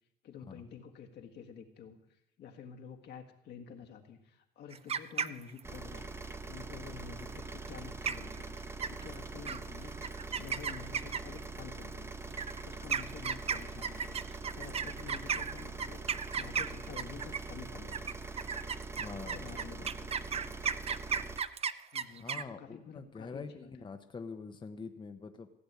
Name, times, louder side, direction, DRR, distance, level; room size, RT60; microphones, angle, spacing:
voice 1, 0.2-6.0 6.4-10.1 10.4-12.3 12.6-16.0 16.3-18.1 19.2-20.3 21.9-23.9, left 6 dB, 70° left, 3 dB, 1.7 m, -49 dB
sound 1, 4.7-5.8 7.7-7.8 8.1-8.4 8.8-9.2 9.5-9.6 10.0-11.4 12.3-17.5 17.9-22.4, right 7 dB, 35° right, 0.5 m, -34 dB
sound 2, 5.6-21.4, right 3 dB, 15° right, 0.9 m, -43 dB
voice 2, 18.9-19.9 22.2-25.5, left 4 dB, 25° left, 6 dB, 0.9 m, -45 dB
16.0 x 6.8 x 8.2 m, 0.84 s
cardioid pair, 95°, 18 cm